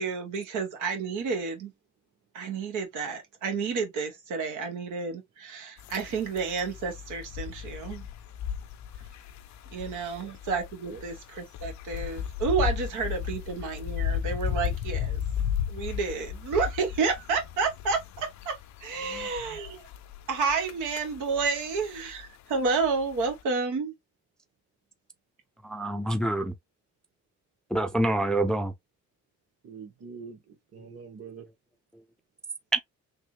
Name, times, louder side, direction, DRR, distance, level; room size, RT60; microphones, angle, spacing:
voice 1, 0.0-1.7 2.3-8.0 9.7-15.2 15.7-19.8 20.3-23.9, right 4 dB, 90° right, 1.3 m, -30 dB
sound 1, 5.8-23.4, left 9 dB, 65° left, 0.5 m, -35 dB
voice 2, 19.0-19.6 29.6-31.5, right 6 dB, 55° right, 1.5 m, -45 dB
voice 3, 25.6-26.5 27.7-28.7 32.7-32.8, right 1 dB, ahead, 0.4 m, -26 dB
3.3 x 2.7 x 3.1 m
cardioid pair, 90°, 30 cm